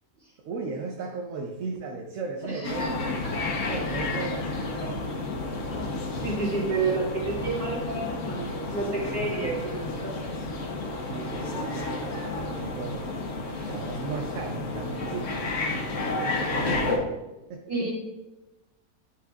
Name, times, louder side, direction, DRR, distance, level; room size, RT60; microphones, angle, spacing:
voice 1, 0.4-3.1 3.6-5.1 11.0-15.5 16.0-17.0 17.5-17.7, right 4 dB, 65° right, 2 dB, 1.0 m, -36 dB
voice 2, 2.4-3.1 5.7-10.5 17.7-17.9, right 3 dB, 40° right, -7 dB, 2.9 m, -31 dB
sound 1, 2.6-17.0, left 2 dB, 55° left, 1.3 m, -31 dB
10.5 x 5.1 x 2.4 m, 1.0 s
omnidirectional pair, 1.6 m